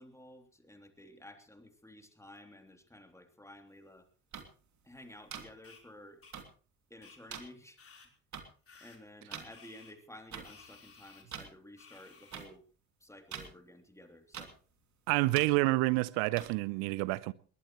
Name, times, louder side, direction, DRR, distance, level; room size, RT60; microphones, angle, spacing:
voice 1, 0.0-4.1 4.8-6.3 6.9-7.8 8.8-12.6 13.0-14.6, left 1 dB, 5° left, 3.2 m, -53 dB
sound 1, 4.3-4.4 5.3-5.4 6.3-6.4 7.3-7.4 8.3-8.4 9.3-9.5 10.3-10.4 11.3-11.5 12.3-12.4 13.3-13.5 14.3-14.5 15.3-15.5 16.4-16.5, right 7 dB, 40° right, 2.8 m, -42 dB
sound 2, 5.6-5.8 6.2-6.3 7.0-7.2 7.8-8.1 8.7-9.0 9.5-9.9 10.4-11.2 11.8-12.5, left 5 dB, 30° left, 4.2 m, -56 dB
voice 2, 15.1-17.3, right 22 dB, 65° right, 0.9 m, -28 dB
21.0 x 19.5 x 3.2 m
figure-of-eight pair, 55°, 43 cm